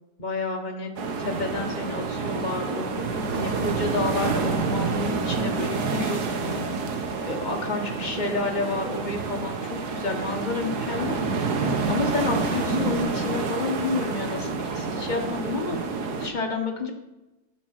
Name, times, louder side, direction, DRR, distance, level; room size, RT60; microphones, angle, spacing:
voice 1, 0.2-0.9 1.2-6.7 7.2-11.2 11.9-15.8 16.2-16.9, left 3 dB, 25° left, 2 dB, 1.5 m, -30 dB
sound 1, 1.0-16.3, right 4 dB, 55° right, 1.6 m, -28 dB
9.8 x 7.7 x 6.1 m, 1.0 s
omnidirectional pair, 2.1 m